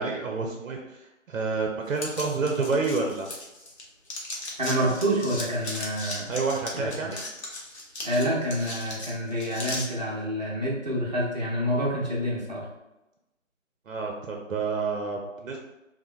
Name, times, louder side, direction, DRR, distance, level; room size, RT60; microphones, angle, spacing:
voice 1, 0.0-3.3 6.3-7.2 13.9-15.6, right 4 dB, 85° right, 1 dB, 0.6 m, -29 dB
sound 1, 2.0-3.8 4.1-9.9, left 2 dB, 60° left, 0.8 m, -37 dB
voice 2, 4.6-6.3 6.7-7.1 8.0-12.7, equal, 35° right, -6 dB, 0.6 m, -27 dB
2.9 x 2.1 x 2.4 m, 0.97 s
figure-of-eight pair, 165°, 39 cm